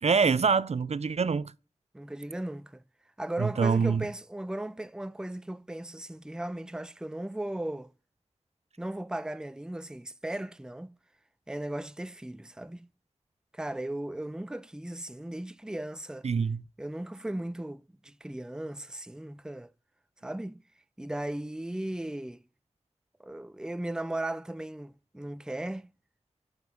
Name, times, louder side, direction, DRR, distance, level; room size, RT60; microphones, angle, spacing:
voice 1, 0.0-1.5 3.4-4.1 16.2-16.6, right 5 dB, 70° right, 0.4 m, -25 dB
voice 2, 1.9-2.8 3.2-7.9 8.8-10.9 11.5-12.9 13.5-16.3 16.8-19.7 20.2-20.6 21.0-22.4 23.2-25.9, right 1 dB, 5° right, 0.4 m, -36 dB
7.7 x 5.3 x 5.2 m
wide cardioid pair, 50°, 11 cm